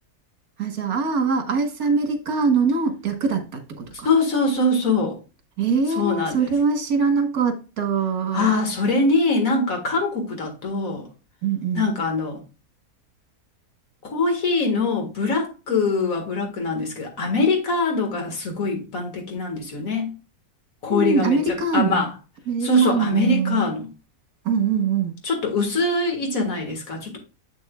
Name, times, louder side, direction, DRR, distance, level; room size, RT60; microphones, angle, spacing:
voice 1, 0.6-4.1 5.6-8.5 11.4-11.9 20.9-22.1 22.5-23.7 24.4-25.1, right 5 dB, 75° right, 1.8 m, -23 dB
voice 2, 4.0-5.2 6.0-6.5 8.3-11.1 11.8-12.4 14.0-20.1 20.8-21.4 21.7-22.1 22.6-23.9 25.2-27.2, left 2 dB, 65° left, 2.1 m, -23 dB
7.6 x 7.1 x 2.3 m
omnidirectional pair, 1.6 m